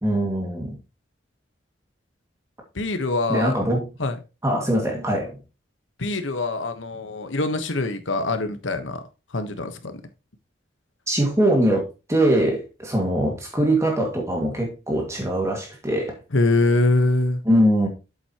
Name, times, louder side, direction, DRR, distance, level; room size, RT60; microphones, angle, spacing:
voice 1, 0.0-0.7 3.3-3.9 4.4-5.4 11.1-16.2 17.5-17.9, right 1 dB, 15° right, 2.0 m, -22 dB
voice 2, 2.7-3.6 4.0-4.2 6.0-9.0 9.3-9.9 16.3-17.4, left 2 dB, 90° left, 1.2 m, -23 dB
8.3 x 7.5 x 3.0 m
head